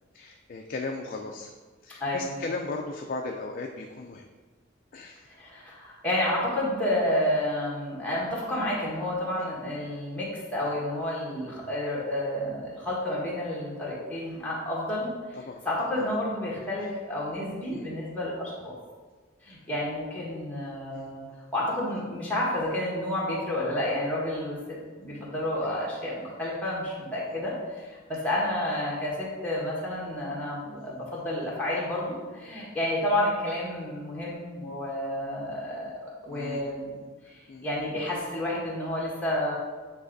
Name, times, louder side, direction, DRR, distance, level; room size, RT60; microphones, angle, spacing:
voice 1, 0.1-1.5 1.8-4.3 4.9-5.3 15.5-15.6 16.1-16.2 17.7-17.9 20.9-21.0 25.6-25.9 36.3-36.7 37.5-37.7, left 3 dB, 45° left, 2 dB, 0.4 m, -36 dB
voice 2, 2.0-2.3 5.3-15.1 15.6-18.7 19.4-21.2 21.5-36.9 37.2-39.5, left 1 dB, 10° left, -6 dB, 1.5 m, -30 dB
8.0 x 3.4 x 3.9 m, 1.4 s
head